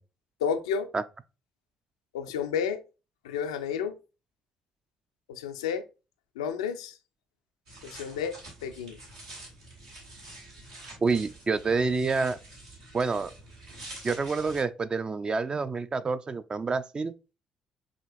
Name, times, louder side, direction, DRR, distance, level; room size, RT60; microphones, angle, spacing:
voice 1, 0.4-0.9 2.1-2.8 3.2-4.0 5.3-5.8 6.4-7.0 7.8-8.3 8.6-9.0, left 7 dB, 75° left, 0.3 m, -31 dB
sound 1, 7.7-14.6, right 1 dB, 75° right, 1.2 m, -47 dB
voice 2, 11.0-12.4 12.9-13.3 14.0-17.1, right 4 dB, 30° right, 0.3 m, -28 dB
5.0 x 2.8 x 2.5 m
figure-of-eight pair, 45°, 3 cm